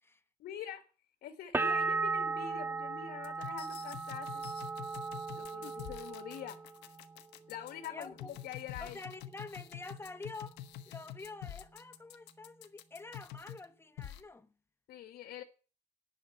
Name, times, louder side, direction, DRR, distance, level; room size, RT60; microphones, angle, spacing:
voice 1, 0.4-0.8 1.2-4.4 5.3-6.6 7.5-9.0 14.9-15.4, left 10 dB, 70° left, 1.7 m, -45 dB
sound 1, 1.5-7.2 7.5-8.2, right 4 dB, 10° right, 0.5 m, -37 dB
sound 2, 3.2-13.6 14.0-14.2, left 12 dB, 90° left, 1.4 m, -47 dB
voice 2, 7.9-8.4 8.8-10.6 10.9-14.5, left 3 dB, 15° left, 1.1 m, -47 dB
11.0 x 5.7 x 8.4 m
cardioid pair, 110°, 17 cm